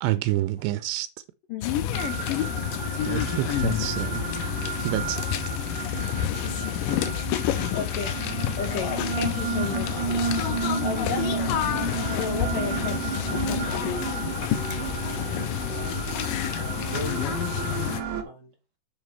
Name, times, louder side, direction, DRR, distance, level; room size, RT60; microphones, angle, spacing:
voice 1, 0.0-1.1 3.0-4.2 4.8-5.2, right 16 dB, 85° right, 2.8 m, -27 dB
voice 2, 1.5-1.9 7.7-8.2 8.6-11.6 12.1-14.2, left 6 dB, 65° left, 2.4 m, -34 dB
sound 1, 1.6-18.0, left 11 dB, 80° left, 2.0 m, -29 dB
sound 2, 1.9-18.2, right 6 dB, 65° right, 2.0 m, -32 dB
voice 3, 15.7-16.1 16.6-17.9 18.2-18.5, right 2 dB, 35° right, 1.8 m, -40 dB
7.5 x 5.9 x 4.6 m
omnidirectional pair, 4.9 m